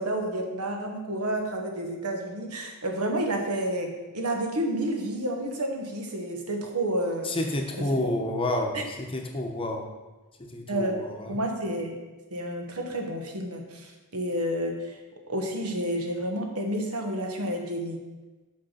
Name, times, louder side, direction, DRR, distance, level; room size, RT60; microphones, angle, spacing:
voice 1, 0.0-7.3 7.8-7.9 8.7-8.8 10.7-11.0 11.3-11.9 12.3-14.9 15.3-18.0, right 1 dB, 75° right, 2 dB, 1.3 m, -30 dB
voice 2, 7.2-9.9 10.4-11.4, left 1 dB, 25° left, 2 dB, 0.9 m, -30 dB
6.5 x 5.7 x 5.8 m, 1.2 s
head